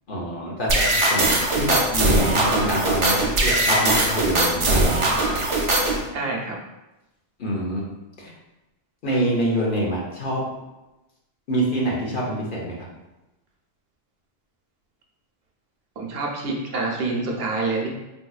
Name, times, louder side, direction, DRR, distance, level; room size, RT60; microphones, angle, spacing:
voice 1, 0.1-4.9 7.4-7.9 8.2-8.3 9.0-10.4 11.5-12.7, equal, 55° left, -3 dB, 0.8 m, -25 dB
sound 1, 0.7-6.0, right 2 dB, 50° right, 0.4 m, -21 dB
voice 2, 6.1-6.6 12.1-12.2 16.0-17.9, right 3 dB, 70° right, -1 dB, 0.8 m, -27 dB
4.1 x 2.7 x 2.3 m, 1.0 s
omnidirectional pair, 1.1 m